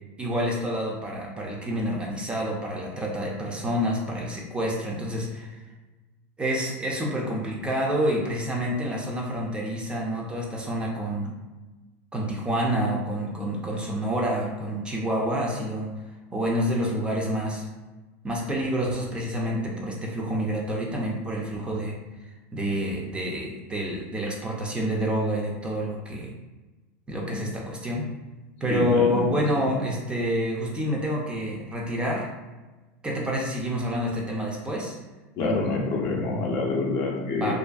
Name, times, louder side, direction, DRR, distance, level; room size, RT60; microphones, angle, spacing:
voice 1, 0.2-5.6 6.4-11.3 12.1-15.9 16.3-17.6 18.2-22.0 22.5-26.3 27.1-28.1 28.6-32.3 33.0-35.0 37.2-37.5, equal, 15° right, -2 dB, 0.4 m, -28 dB
voice 2, 28.7-29.3 29.6-29.7 35.4-37.5, left 3 dB, 40° left, 0 dB, 0.5 m, -27 dB
2.5 x 2.4 x 2.3 m, 1.2 s
supercardioid pair, 140°, 7 cm